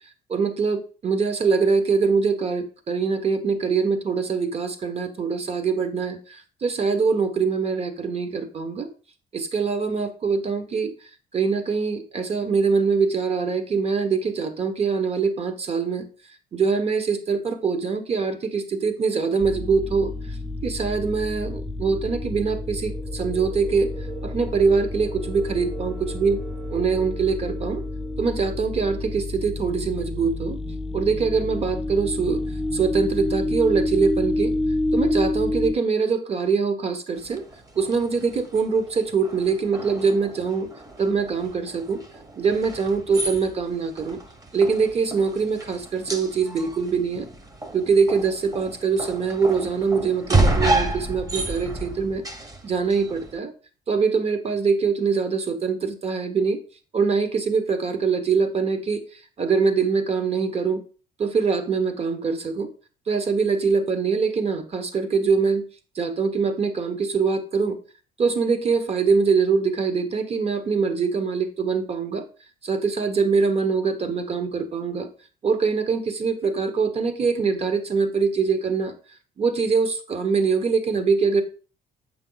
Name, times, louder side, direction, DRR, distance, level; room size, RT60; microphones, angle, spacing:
voice 1, 0.3-8.9 9.3-10.9 11.3-16.0 16.5-20.4 20.6-23.9 24.2-26.4 26.7-27.8 28.2-30.6 30.9-32.4 32.7-34.5 34.9-37.4 37.7-40.7 41.0-42.0 42.3-44.2 44.5-47.3 47.7-52.2 52.6-53.5 53.9-56.6 56.9-59.0 59.4-60.8 61.2-62.7 63.1-65.6 65.9-67.8 68.2-72.3 72.6-75.1 75.4-78.9 79.4-81.4, right 5 dB, 35° right, 9 dB, 1.4 m, -23 dB
sound 1, 19.4-35.8, left 2 dB, ahead, 0.6 m, -29 dB
sound 2, 37.2-53.4, right 2 dB, 20° right, 1.3 m, -30 dB
8.4 x 5.6 x 4.0 m, 0.37 s
cardioid pair, 110°, 17 cm